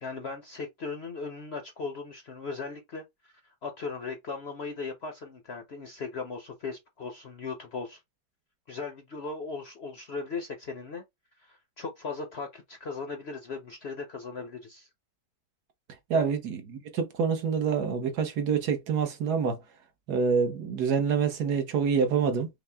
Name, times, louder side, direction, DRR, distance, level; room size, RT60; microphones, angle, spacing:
voice 1, 0.0-3.3 3.6-8.0 8.7-11.0 11.4-14.9 16.1-16.3, left 4 dB, 55° left, 0.8 m, -38 dB
voice 2, 16.1-19.6 20.1-22.5, right 6 dB, 70° right, 1.5 m, -26 dB
5.5 x 2.2 x 3.4 m
omnidirectional pair, 1.8 m